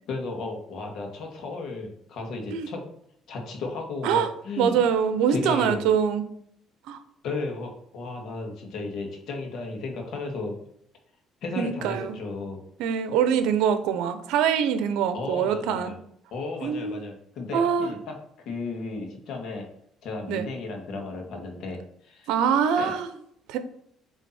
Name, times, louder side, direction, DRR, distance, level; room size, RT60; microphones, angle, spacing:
voice 1, 0.1-2.8 3.3-4.8 5.3-5.8 7.2-10.6 11.4-12.6 15.1-15.9 16.3-18.2 18.5-19.7 20.0-22.4 22.8-23.0, left 3 dB, 65° left, 2 dB, 2.0 m, -34 dB
voice 2, 4.6-6.3 6.9-7.0 11.6-12.2 12.8-15.9 16.6-17.0 17.5-17.9 20.3-20.5 22.3-23.1 23.5-23.6, right 7 dB, 90° right, 10 dB, 0.8 m, -24 dB
8.1 x 3.6 x 4.3 m, 0.71 s
cardioid pair, 130°, 0 cm